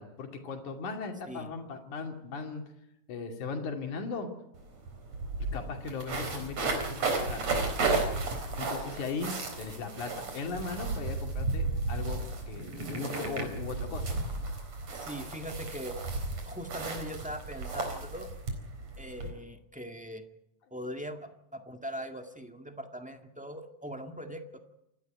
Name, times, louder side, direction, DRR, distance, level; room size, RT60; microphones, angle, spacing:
voice 1, 0.0-2.6 3.1-4.3 5.5-7.5 8.6-14.1, left 4 dB, 85° left, 4 dB, 4.0 m, -38 dB
sound 1, 4.5-4.6 4.9-19.3, right 3 dB, 60° right, 5.3 m, -34 dB
voice 2, 14.9-16.0 16.5-18.3 19.0-20.2 20.7-24.6, equal, 5° right, 5 dB, 1.1 m, -41 dB
28.5 x 13.0 x 9.2 m, 0.83 s
omnidirectional pair, 3.4 m